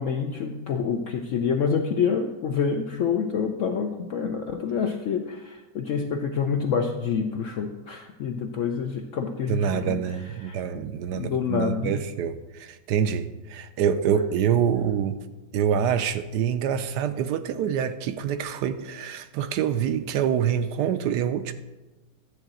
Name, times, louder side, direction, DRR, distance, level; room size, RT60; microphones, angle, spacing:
voice 1, 0.0-10.0 10.4-10.6 11.1-12.0, left 6 dB, 70° left, 5 dB, 0.7 m, -27 dB
voice 2, 9.5-15.2 15.5-21.5, right 8 dB, 75° right, 10 dB, 1.1 m, -26 dB
11.5 x 3.9 x 7.6 m, 1.1 s
omnidirectional pair, 1.9 m